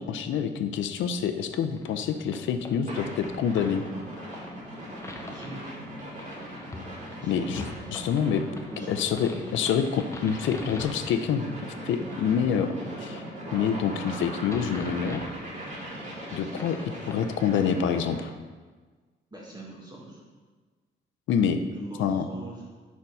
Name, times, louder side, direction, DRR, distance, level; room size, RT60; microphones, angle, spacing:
voice 1, 0.0-3.8 7.2-8.5 8.9-13.2 13.5-15.3 16.3-18.3 21.3-21.6 22.0-22.3, left 7 dB, 75° left, 8 dB, 0.5 m, -27 dB
sound 1, 1.5-18.2, left 2 dB, 15° left, 0.7 m, -45 dB
sound 2, 2.9-18.3, equal, 35° right, 1.8 m, -39 dB
voice 2, 5.2-5.7 7.1-7.5 8.7-9.0 19.3-20.2 21.7-22.7, right 1 dB, 20° right, -4 dB, 1.3 m, -42 dB
4.6 x 4.4 x 5.4 m, 1.4 s
cardioid pair, 90°, 20 cm